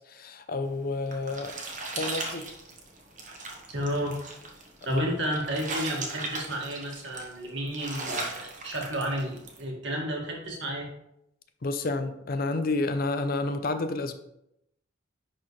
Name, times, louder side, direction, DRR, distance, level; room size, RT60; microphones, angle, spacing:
voice 1, 0.0-1.5 1.9-2.4 4.9-5.1 11.6-14.1, left 2 dB, 50° left, 9 dB, 0.6 m, -30 dB
sound 1, 0.7-9.6, right 2 dB, 40° right, 1.2 m, -38 dB
voice 2, 3.7-4.2 4.8-10.9, right 1 dB, 65° right, -1 dB, 2.0 m, -32 dB
10.5 x 4.2 x 3.2 m, 0.81 s
head